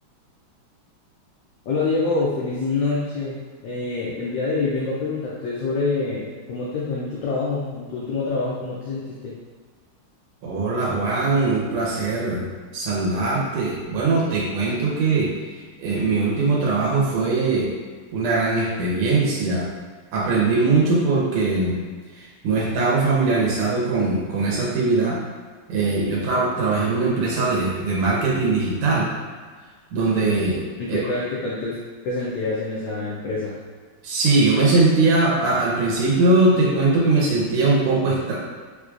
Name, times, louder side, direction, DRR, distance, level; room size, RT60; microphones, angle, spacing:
voice 1, 1.7-3.4 3.6-9.3 30.8-31.8 32.0-33.6, left 3 dB, 75° left, -6 dB, 1.1 m, -26 dB
voice 2, 10.4-17.7 18.1-19.7 20.1-21.8 22.1-25.2 25.7-29.1 29.9-30.6 30.9-31.0 34.0-38.4, right 3 dB, 90° right, -4 dB, 1.5 m, -21 dB
4.3 x 2.2 x 2.5 m, 1.5 s
omnidirectional pair, 2.3 m